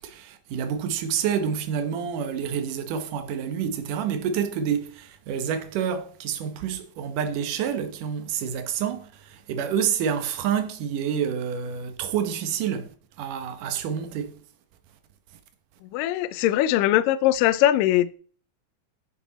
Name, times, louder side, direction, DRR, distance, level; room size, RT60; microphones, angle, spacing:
voice 1, 0.0-12.9 13.2-14.3, right 8 dB, 65° right, 2.5 m, -28 dB
voice 2, 15.9-18.1, left 13 dB, 75° left, 2.1 m, -21 dB
14.5 x 7.1 x 4.1 m
omnidirectional pair, 4.5 m